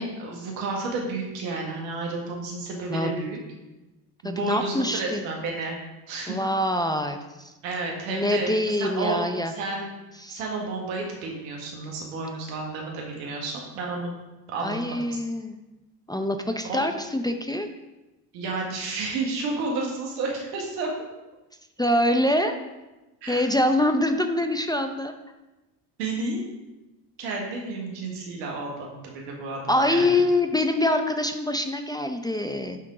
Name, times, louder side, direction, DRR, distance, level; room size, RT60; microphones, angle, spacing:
voice 1, 0.0-3.4 4.2-6.4 7.6-9.2 9.5-9.9 10.3-14.2 14.5-15.2 16.7-16.8 18.3-20.9 23.2-23.4 26.0-26.4 27.2-30.2, right 3 dB, 80° right, -1 dB, 1.7 m, -31 dB
voice 2, 4.2-5.2 6.3-7.5 8.1-9.5 10.2-10.4 14.6-15.5 16.1-17.7 21.8-22.6 23.3-25.1 29.7-32.8, left 1 dB, 10° left, 5 dB, 0.6 m, -24 dB
10.5 x 3.7 x 3.8 m, 1.1 s
hypercardioid pair, 70°, 48 cm